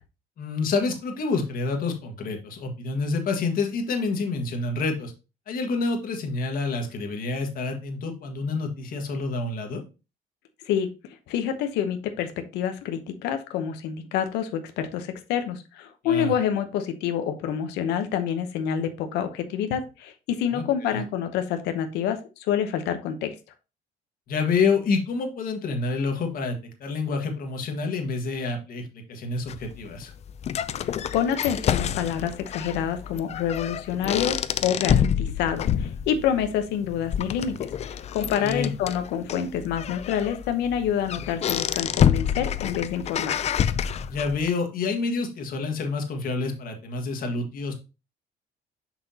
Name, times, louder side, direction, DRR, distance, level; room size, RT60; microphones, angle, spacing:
voice 1, 0.4-5.1 5.5-9.8 16.0-16.3 20.5-21.0 24.3-30.1 38.1-38.7 44.1-47.7, left 4 dB, 60° left, 4 dB, 1.6 m, -28 dB
voice 2, 11.3-23.3 30.8-43.4, left 9 dB, 90° left, 7 dB, 0.9 m, -27 dB
sound 1, 29.5-44.5, left 9 dB, 40° left, 0.4 m, -28 dB
5.9 x 5.8 x 2.8 m, 0.29 s
cardioid pair, 110°, 17 cm